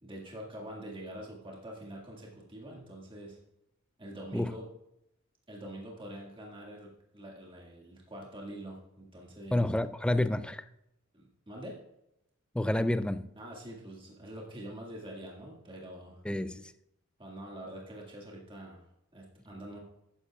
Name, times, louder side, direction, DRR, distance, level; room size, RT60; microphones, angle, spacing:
voice 1, 0.0-3.4 4.0-4.7 5.5-9.6 11.1-11.8 13.4-16.2 17.2-18.9 19.1-19.8, right 1 dB, 25° right, 1.9 m, -45 dB
voice 2, 9.5-10.6 12.5-13.3 16.2-16.7, left 1 dB, 5° left, 0.3 m, -29 dB
13.0 x 9.9 x 2.3 m
head